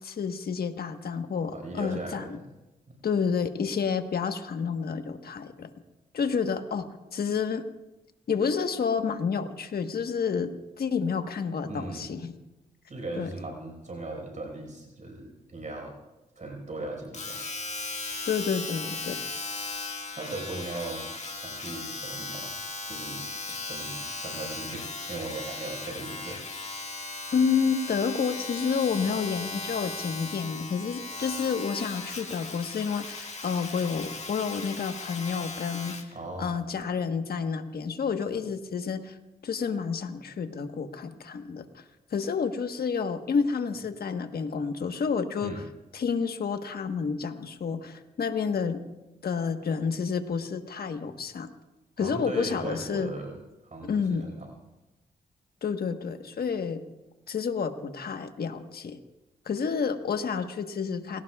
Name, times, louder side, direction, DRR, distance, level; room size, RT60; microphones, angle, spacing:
voice 1, 0.0-2.4 3.0-5.7 6.1-7.6 8.3-12.4 13.2-13.3 18.3-19.2 23.5-23.6 27.3-36.0 36.4-39.2 39.4-41.8 42.1-45.6 45.9-48.8 49.2-51.5 52.0-53.1 53.8-54.3 55.6-56.8 57.3-59.0 59.4-61.2, left 6 dB, 70° left, 7 dB, 1.4 m, -29 dB
voice 2, 1.5-2.4 2.9-3.0 11.6-12.1 12.9-16.0 16.4-17.4 20.1-21.0 21.4-22.6 22.9-26.4 36.1-36.6 45.4-45.6 52.0-53.4 53.6-54.5, right 2 dB, 50° right, 2 dB, 5.1 m, -38 dB
Domestic sounds home sounds, 17.1-36.1 36.8-36.9, left 3 dB, 45° left, 1.9 m, -37 dB
29.0 x 17.5 x 2.4 m, 1.0 s
cardioid pair, 50°, 16 cm